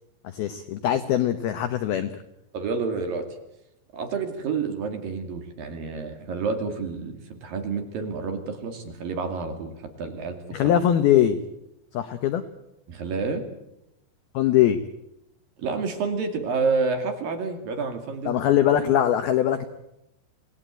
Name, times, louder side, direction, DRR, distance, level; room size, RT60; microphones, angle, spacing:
voice 1, 0.3-2.1 10.5-11.4 11.9-12.4 14.3-14.8 18.3-19.7, left 11 dB, 80° left, 10 dB, 2.2 m, -21 dB
voice 2, 2.5-3.3 3.9-9.7 10.0-10.4 10.6-10.7 12.9-13.4 15.6-18.4, right 4 dB, 50° right, 6 dB, 3.4 m, -29 dB
26.5 x 18.5 x 9.0 m, 0.87 s
omnidirectional pair, 5.9 m